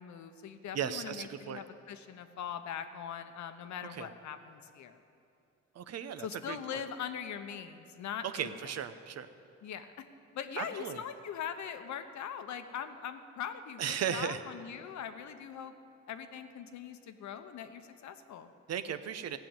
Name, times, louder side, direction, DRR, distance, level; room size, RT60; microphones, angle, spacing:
voice 1, 0.0-5.0 6.2-8.7 9.6-9.9 10.3-15.7 16.1-18.5, left 8 dB, 70° left, 9 dB, 1.0 m, -41 dB
voice 2, 0.7-1.6 3.9-4.1 5.7-6.8 8.2-9.3 10.6-11.0 13.8-14.4 18.7-19.4, right 8 dB, 60° right, 11 dB, 0.8 m, -36 dB
15.5 x 6.9 x 9.1 m, 2.6 s
cardioid pair, 90°, 30 cm